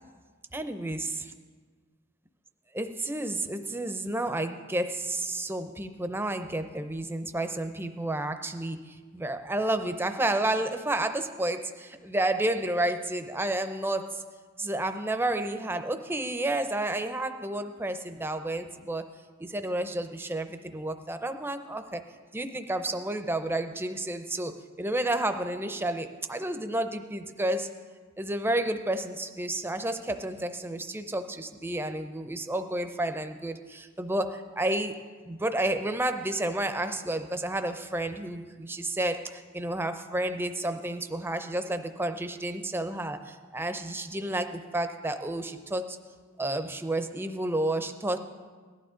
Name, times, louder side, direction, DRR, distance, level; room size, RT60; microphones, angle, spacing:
voice 1, 0.5-1.1 2.7-14.2 14.6-19.1 19.4-22.0 22.3-27.7 28.2-35.0 35.2-46.0 46.4-48.2, right 1 dB, 10° right, 8 dB, 0.6 m, -31 dB
18.0 x 12.0 x 3.8 m, 1.5 s
head